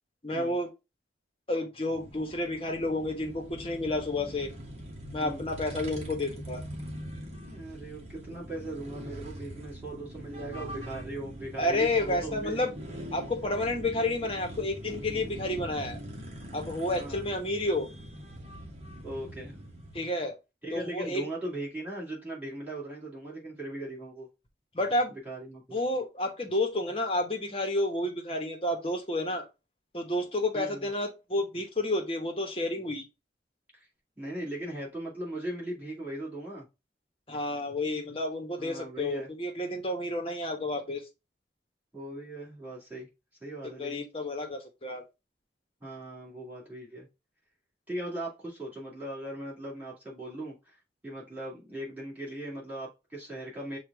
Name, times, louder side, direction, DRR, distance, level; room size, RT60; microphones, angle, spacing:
voice 1, 0.2-0.7 1.5-4.5 5.1-6.6 11.6-12.7 13.1-16.0 16.5-17.9 19.9-20.4 20.7-21.2 24.7-25.1 25.7-29.4 29.9-33.0 37.3-41.0 43.8-45.0, left 1 dB, 30° left, 1.0 m, -30 dB
sound 1, 1.9-20.0, equal, 35° right, 1.1 m, -42 dB
voice 2, 7.4-12.6 17.0-17.4 19.0-19.6 20.6-24.3 25.1-25.8 30.5-30.9 33.7-33.9 34.2-36.7 38.6-39.3 41.9-43.1 43.4-44.1 45.8-47.1 47.9-53.8, right 1 dB, 10° right, 2.2 m, -39 dB
6.4 x 2.4 x 3.4 m
head